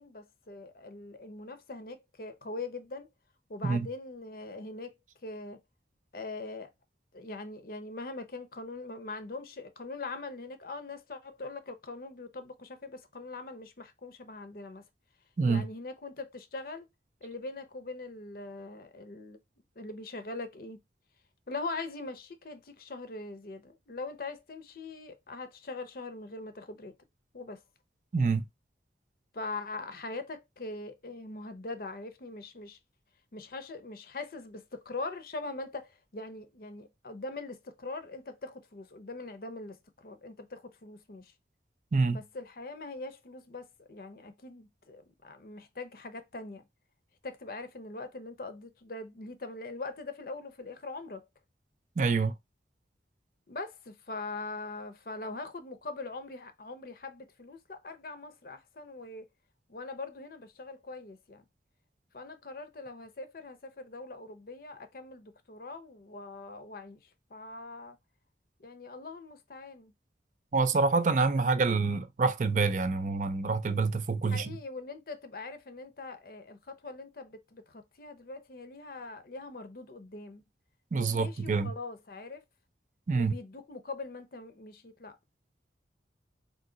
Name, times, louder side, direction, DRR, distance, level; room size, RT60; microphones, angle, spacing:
voice 1, 0.0-3.1 3.5-4.9 5.2-5.6 6.1-6.7 7.1-14.8 15.4-16.9 17.2-19.4 19.8-20.8 21.5-26.9 27.3-27.6 29.3-32.8 33.3-41.3 42.1-46.6 47.2-51.2 53.5-59.2 59.7-61.4 62.1-67.0 67.3-68.0 68.6-69.9 74.3-80.4 80.9-82.4 83.1-85.2, left 3 dB, 50° left, 0.6 m, -42 dB
voice 2, 52.0-52.3 70.5-74.5 80.9-81.7 83.1-83.3, right 4 dB, 45° right, 0.4 m, -27 dB
3.8 x 2.7 x 3.7 m
head